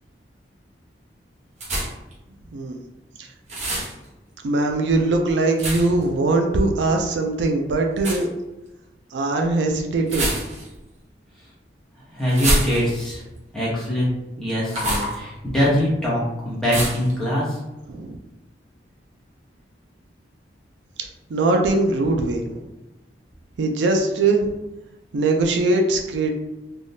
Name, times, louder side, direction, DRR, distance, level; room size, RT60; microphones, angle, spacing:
sound 1, 1.6-2.1 3.5-3.9 5.6-6.0 8.0-8.2 10.0-10.8 12.3-13.1 14.7-15.2 16.7-17.1, right 1 dB, 40° right, 0.8 m, -25 dB
voice 1, 4.4-8.3 9.1-10.3 17.9-18.2 21.3-22.7 23.6-24.5 25.1-26.3, right 2 dB, 80° right, 3 dB, 0.4 m, -21 dB
voice 2, 12.1-13.2 13.5-14.1 14.4-17.6, equal, 5° left, -8 dB, 1.0 m, -23 dB
3.4 x 2.3 x 2.7 m, 1.0 s
head